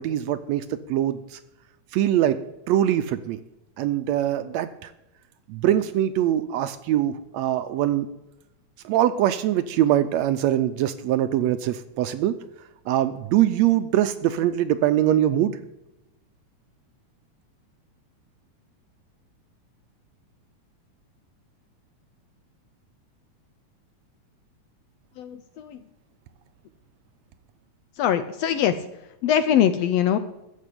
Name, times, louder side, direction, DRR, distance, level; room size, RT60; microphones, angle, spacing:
voice 1, 0.0-1.4 1.9-2.4 2.7-3.4 3.8-4.9 5.5-8.1 8.9-12.4 12.9-15.6, right 12 dB, 75° right, 11 dB, 1.7 m, -23 dB
voice 2, 25.2-25.8 28.0-28.7 29.2-30.2, left 9 dB, 75° left, 11 dB, 1.6 m, -22 dB
14.0 x 5.3 x 8.5 m, 0.90 s
omnidirectional pair, 3.4 m